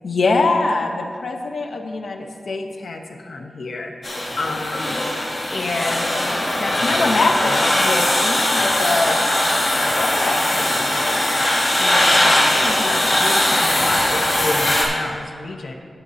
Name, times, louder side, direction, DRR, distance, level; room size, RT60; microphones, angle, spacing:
voice 1, 0.0-3.9 4.4-6.2 6.5-11.3 11.8-15.7, left 3 dB, 80° left, 2 dB, 0.9 m, -26 dB
sound 1, 4.0-14.8, left 1 dB, 50° left, 2.5 m, -20 dB
18.0 x 7.3 x 2.8 m, 2.1 s
wide cardioid pair, 125°, 0 cm